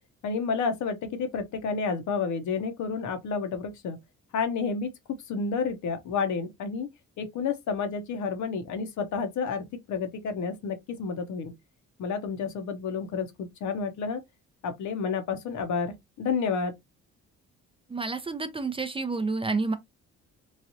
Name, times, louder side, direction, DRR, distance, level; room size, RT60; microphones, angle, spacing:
voice 1, 0.2-4.0 4.3-6.9 7.2-11.5 12.0-14.2 14.6-16.7, left 5 dB, 70° left, 0.8 m, -30 dB
voice 2, 17.9-19.8, right 3 dB, 20° right, 0.4 m, -29 dB
3.2 x 2.4 x 2.6 m
cardioid pair, 90°, 30 cm